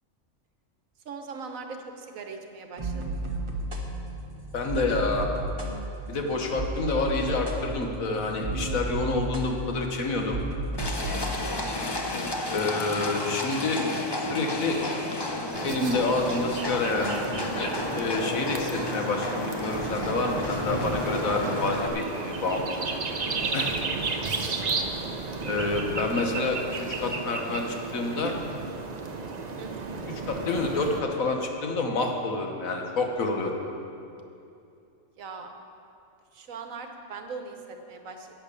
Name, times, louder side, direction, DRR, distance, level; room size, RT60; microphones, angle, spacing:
voice 1, 1.0-3.5 11.0-11.3 23.4-23.6 24.6-24.7 28.2-28.4 29.6-30.0 35.2-35.5 36.3-38.4, right 4 dB, 80° right, 5 dB, 1.4 m, -41 dB
sound 1, 2.8-11.3, right 1 dB, 25° right, 1.1 m, -33 dB
voice 2, 4.5-5.3 6.1-10.4 12.5-13.8 14.3-14.8 15.6-17.2 17.5-22.7 23.5-23.7 25.4-26.6 27.0-28.3 30.3-33.6, left 3 dB, 90° left, 2 dB, 1.7 m, -28 dB
Livestock farm animals working animals, 10.8-21.9, left 2 dB, 25° left, 0.7 m, -32 dB
sound 2, 15.5-31.0, right 4 dB, 40° right, 0.7 m, -33 dB
10.5 x 8.8 x 6.9 m, 2.6 s
omnidirectional pair, 1.4 m